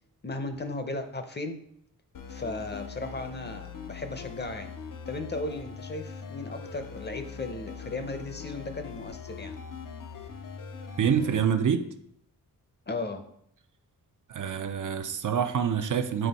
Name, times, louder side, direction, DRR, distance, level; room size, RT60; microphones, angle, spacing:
voice 1, 0.2-1.6 2.3-4.7 5.1-9.5 12.9-13.2, left 2 dB, 30° left, 0.7 m, -36 dB
sound 1, 2.1-11.5, left 6 dB, 65° left, 0.7 m, -41 dB
voice 2, 11.0-11.9 14.3-16.3, right 7 dB, 60° right, 0.6 m, -26 dB
7.7 x 4.3 x 4.1 m
wide cardioid pair, 115°, 35 cm